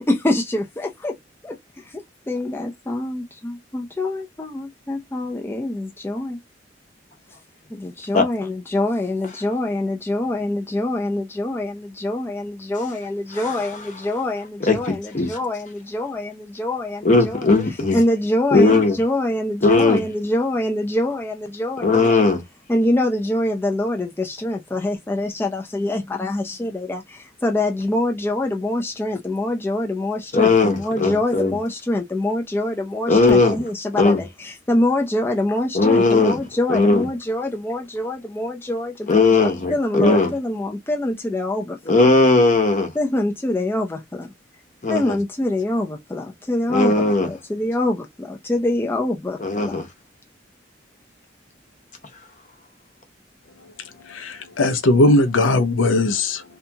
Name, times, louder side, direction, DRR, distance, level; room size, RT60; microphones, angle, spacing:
voice 1, 0.1-1.1 1.4-6.4 7.7-17.5 17.9-22.3 22.7-42.1 42.9-44.3 44.9-49.8, left 1 dB, 10° left, 0.4 m, -25 dB
voice 2, 14.6-15.3 17.0-18.0 18.5-19.0 19.6-20.0 21.8-22.4 30.3-31.6 33.1-33.6 34.0-34.2 35.7-36.4 36.7-37.0 39.1-40.3 41.9-42.9 44.8-45.1 46.7-47.3 49.4-49.9, left 3 dB, 40° left, 0.7 m, -17 dB
voice 3, 54.1-56.4, left 2 dB, 80° left, 0.5 m, -18 dB
2.7 x 2.3 x 2.7 m
head